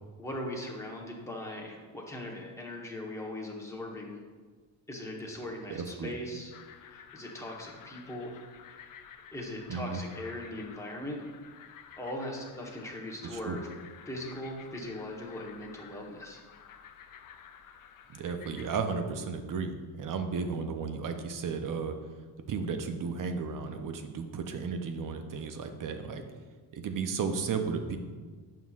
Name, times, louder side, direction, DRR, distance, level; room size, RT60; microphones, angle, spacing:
voice 1, 0.2-4.2 4.9-6.5 6.8-8.4 8.7-8.8 9.3-11.2 12.0-13.7 14.1-16.4, left 1 dB, 5° left, -2 dB, 1.0 m, -39 dB
voice 2, 5.7-6.1 9.7-10.0 13.3-13.6 18.1-22.0 22.5-26.2 26.7-28.0, right 5 dB, 45° right, 7 dB, 0.6 m, -34 dB
sound 1, 6.5-18.8, left 8 dB, 45° left, 0.5 m, -52 dB
7.3 x 5.6 x 2.4 m, 1.4 s
cardioid pair, 105°, 47 cm